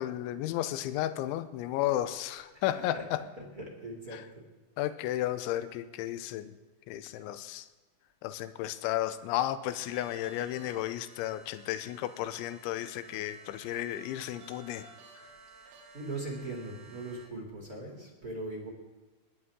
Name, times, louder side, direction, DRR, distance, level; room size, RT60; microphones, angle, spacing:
voice 1, 0.0-3.2 4.1-4.2 4.8-6.6 6.9-7.7 8.2-14.9, left 13 dB, 85° left, 12 dB, 3.1 m, -33 dB
voice 2, 2.5-3.0 3.6-4.4 15.6-18.7, right 2 dB, 25° right, -2 dB, 2.6 m, -40 dB
sound 1, 9.7-17.3, right 2 dB, 80° right, 4.3 m, -54 dB
28.5 x 11.0 x 3.7 m, 1.2 s
omnidirectional pair, 5.4 m